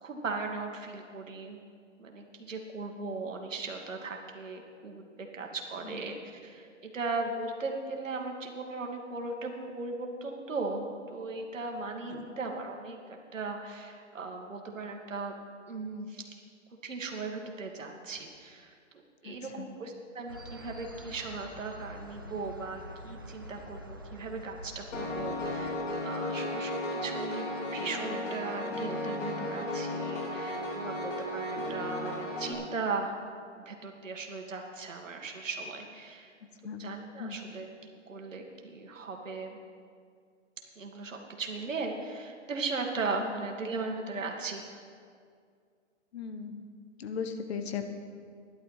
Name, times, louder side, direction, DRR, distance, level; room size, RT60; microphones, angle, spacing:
voice 1, 0.0-1.6 2.0-13.0 13.3-15.3 15.7-16.4 16.8-18.8 19.2-33.2 33.5-36.3 36.8-39.6 40.8-44.6, right 3 dB, 90° right, 2 dB, 2.0 m, -38 dB
voice 2, 19.2-19.7 36.6-36.9 37.2-37.4 43.2-43.3 46.1-46.7 47.0-47.9, left 6 dB, 55° left, 7 dB, 1.3 m, -38 dB
sound 1, 20.3-25.8, equal, 20° right, 0.3 m, -46 dB
Piano, 24.9-32.5, left 1 dB, 75° left, 3.0 m, -34 dB
12.0 x 11.0 x 5.7 m, 2.2 s
hypercardioid pair, 150°, 37 cm